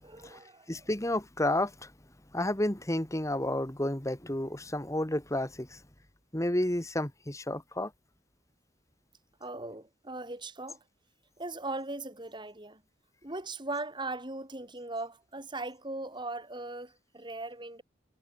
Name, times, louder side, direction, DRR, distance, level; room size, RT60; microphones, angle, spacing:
voice 1, 0.0-0.9 9.4-10.8 11.4-12.8 13.2-17.8, right 2 dB, 25° right, 6.2 m, -39 dB
voice 2, 0.7-1.9 2.3-5.8 6.3-7.9, left 1 dB, 15° left, 2.0 m, -31 dB
head